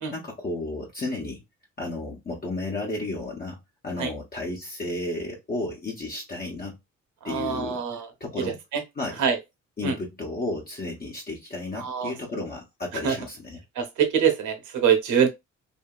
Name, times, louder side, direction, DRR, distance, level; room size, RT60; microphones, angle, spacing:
voice 1, 0.1-1.4 1.8-6.8 7.2-7.8 8.2-8.6 8.9-9.2 9.8-13.6, left 2 dB, 30° left, 0.9 m, -33 dB
voice 2, 7.2-8.1 8.7-8.8 9.2-9.4 9.8-9.9 11.8-12.1 13.0-13.1 13.8-15.3, right 7 dB, 80° right, 0.9 m, -24 dB
2.8 x 2.7 x 2.3 m
cardioid pair, 90°, 30 cm